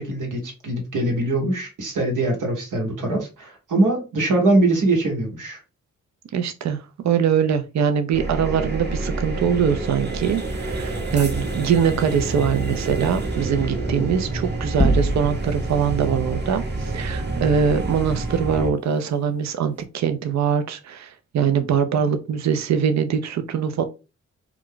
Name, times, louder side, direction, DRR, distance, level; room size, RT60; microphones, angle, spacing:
voice 1, 0.0-5.6, right 2 dB, 75° right, 1.1 m, -22 dB
voice 2, 6.3-23.8, right 7 dB, 60° right, 0.5 m, -22 dB
sound 1, 8.1-18.7, right 2 dB, 35° right, 0.9 m, -28 dB
sound 2, 14.8-15.8, equal, 5° left, 0.5 m, -21 dB
2.3 x 2.3 x 3.6 m
supercardioid pair, 40°, 31 cm